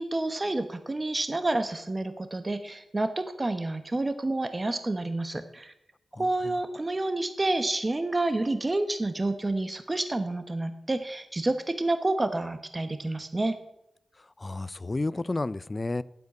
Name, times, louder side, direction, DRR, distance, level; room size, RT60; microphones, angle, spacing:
voice 1, 0.0-5.7 6.2-13.6, right 2 dB, 30° right, 1.1 m, -29 dB
voice 2, 6.2-6.6 14.4-16.0, left 2 dB, 35° left, 0.5 m, -31 dB
9.1 x 8.1 x 9.4 m
cardioid pair, 50°, 0 cm